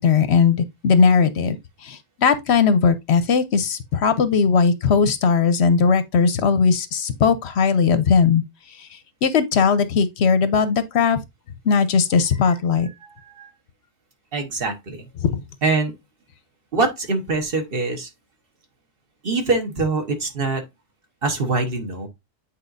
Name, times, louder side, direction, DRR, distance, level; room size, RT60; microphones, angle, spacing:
voice 1, 0.0-1.6 1.8-8.4 8.8-8.9 9.2-11.2 11.7-12.9 15.2-15.3, left 5 dB, 60° left, 0.8 m, -18 dB
voice 2, 12.9-13.5 14.3-15.1 15.6-15.9 16.7-18.1 19.2-20.6 21.2-22.1, right 3 dB, 45° right, 1.3 m, -24 dB
8.6 x 4.4 x 2.5 m
omnidirectional pair, 1.4 m